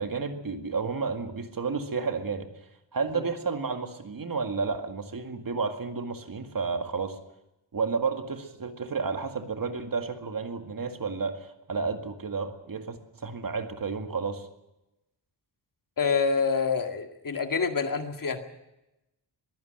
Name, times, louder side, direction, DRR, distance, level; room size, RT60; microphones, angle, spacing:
voice 1, 0.0-2.5 2.9-7.2 7.7-14.5, right 4 dB, 50° right, 7 dB, 2.0 m, -31 dB
voice 2, 16.0-18.4, left 5 dB, 50° left, 6 dB, 2.1 m, -27 dB
22.5 x 15.5 x 7.8 m, 0.92 s
wide cardioid pair, 175°, 43 cm